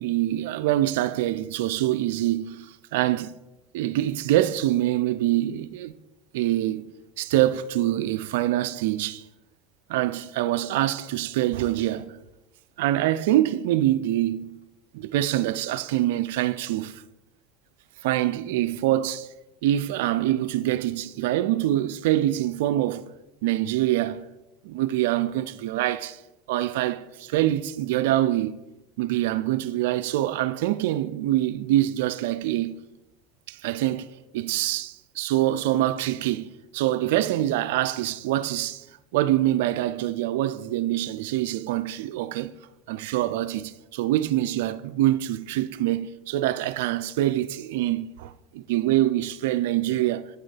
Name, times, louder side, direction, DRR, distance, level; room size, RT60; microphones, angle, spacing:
voice 1, 0.0-3.3 3.7-5.9 6.3-9.2 9.9-12.2 12.8-14.6 14.9-17.0 18.0-19.3 19.6-23.1 23.4-24.3 24.6-26.2 26.5-28.6 29.0-32.7 33.5-34.1 34.3-38.8 39.1-42.5 42.9-50.3, right 14 dB, 75° right, 0.4 m, -25 dB
8.4 x 4.7 x 4.5 m
hypercardioid pair, 95°, 0 cm